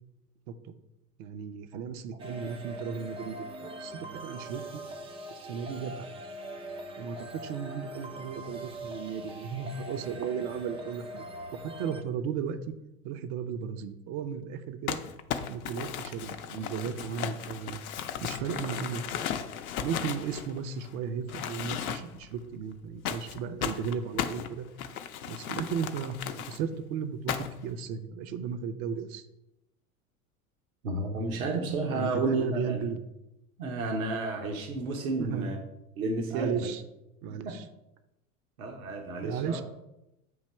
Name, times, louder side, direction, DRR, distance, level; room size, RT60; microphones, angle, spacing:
voice 1, 1.2-4.8 5.3-6.1 7.0-11.2 11.5-12.6 13.0-15.0 15.5-17.8 18.2-19.1 19.8-24.7 25.3-29.2 31.9-33.0 35.2-35.5 36.3-36.8 37.2-37.6 39.2-39.6, right 7 dB, 45° right, 10 dB, 0.7 m, -35 dB
sound 1, 2.2-12.0, right 1 dB, 15° right, 0.4 m, -42 dB
Crumpling crinkling, 14.9-20.9 21.3-22.3 23.1-26.6 27.3-27.7, left 9 dB, 70° left, 0.6 m, -35 dB
voice 2, 30.8-32.9 33.6-35.6 36.0-36.7 37.4-37.6 38.6-39.6, right 3 dB, 70° right, 2 dB, 1.0 m, -31 dB
7.8 x 2.9 x 4.3 m, 0.89 s
figure-of-eight pair, 80°, 44 cm